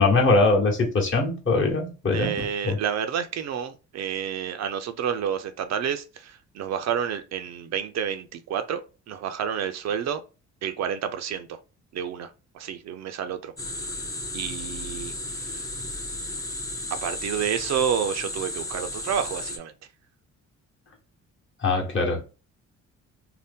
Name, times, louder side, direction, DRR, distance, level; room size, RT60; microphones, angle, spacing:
voice 1, 0.0-2.8 21.6-22.3, left 3 dB, 40° left, 1.0 m, -22 dB
voice 2, 2.1-8.8 9.1-10.2 10.6-11.6 11.9-12.3 12.5-13.5 14.3-15.6 16.9-19.7, right 8 dB, 60° right, 0.5 m, -29 dB
sound 1, 13.6-19.6, left 1 dB, 10° left, 0.6 m, -34 dB
2.7 x 2.1 x 3.4 m
cardioid pair, 90°, 30 cm